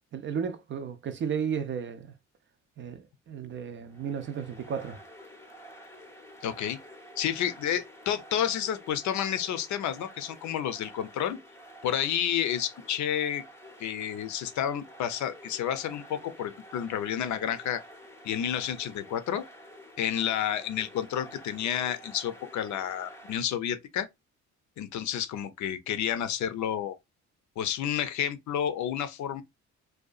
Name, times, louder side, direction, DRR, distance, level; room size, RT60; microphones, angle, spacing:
voice 1, 0.1-2.1 2.8-5.0, right 7 dB, 40° right, 0.4 m, -34 dB
sound 1, 3.9-23.4, equal, 10° left, 0.6 m, -50 dB
voice 2, 6.4-6.8 7.2-11.4 11.8-13.4 13.8-17.8 18.2-19.4 20.0-24.1 24.8-27.0 27.6-29.4, left 10 dB, 70° left, 0.5 m, -30 dB
2.7 x 2.3 x 2.3 m
cardioid pair, 90°, 30 cm